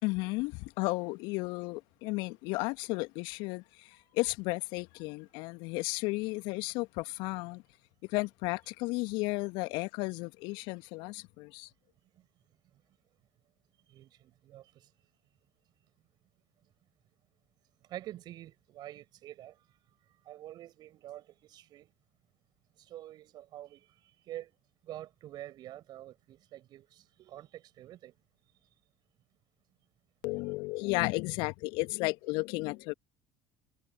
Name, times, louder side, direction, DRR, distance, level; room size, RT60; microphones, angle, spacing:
voice 1, 0.0-7.6 8.1-11.7 30.2-32.9, left 25 dB, 60° left, 1.8 m, -33 dB
voice 2, 13.9-14.9 17.9-19.6 20.3-21.9 22.8-23.9 24.3-24.5 24.8-28.1, right 13 dB, 50° right, 6.1 m, -47 dB
figure-of-eight pair, 60°, 9 cm